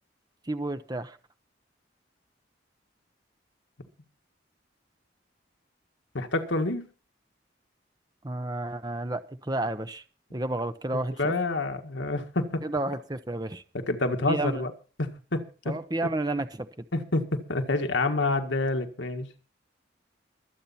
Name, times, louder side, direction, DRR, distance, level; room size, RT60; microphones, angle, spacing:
voice 1, 0.4-1.2 8.2-10.0 10.3-11.3 12.6-13.6 14.3-14.7 15.7-16.9, right 2 dB, 20° right, 10 dB, 0.8 m, -31 dB
voice 2, 6.1-6.8 11.2-12.6 13.7-14.7 15.0-15.7 16.9-19.3, left 2 dB, 80° left, 6 dB, 1.8 m, -28 dB
23.5 x 8.4 x 4.3 m, 0.36 s
head